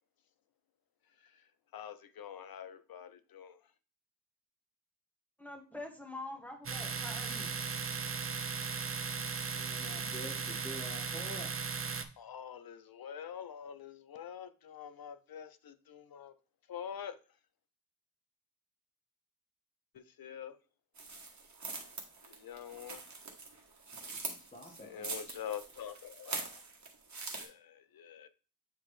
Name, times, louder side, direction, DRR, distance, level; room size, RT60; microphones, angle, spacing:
voice 1, 1.2-3.6 12.2-16.3 16.7-17.2 19.9-20.6 22.2-23.0 24.6-26.6 27.3-28.3, left 8 dB, 85° left, 0.6 m, -46 dB
voice 2, 5.4-7.5, left 2 dB, 5° left, 1.5 m, -45 dB
Domestic sounds home sounds, 6.7-12.1, right 5 dB, 40° right, 0.6 m, -37 dB
voice 3, 9.5-11.5 24.2-25.1, equal, 25° left, 1.5 m, -47 dB
sound 1, 21.0-27.5, right 4 dB, 55° right, 1.3 m, -44 dB
8.3 x 3.6 x 3.2 m
wide cardioid pair, 85°, 35 cm